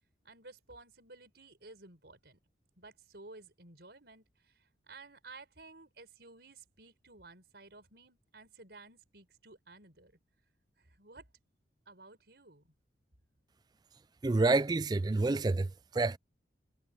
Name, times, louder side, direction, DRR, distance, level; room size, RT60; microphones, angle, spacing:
voice 1, 0.2-2.4 2.8-4.6 4.9-10.2 10.8-11.3 11.9-12.6, right 3 dB, 60° right, 5.2 m, -54 dB
voice 2, 14.2-16.2, right 3 dB, 20° right, 0.3 m, -28 dB
head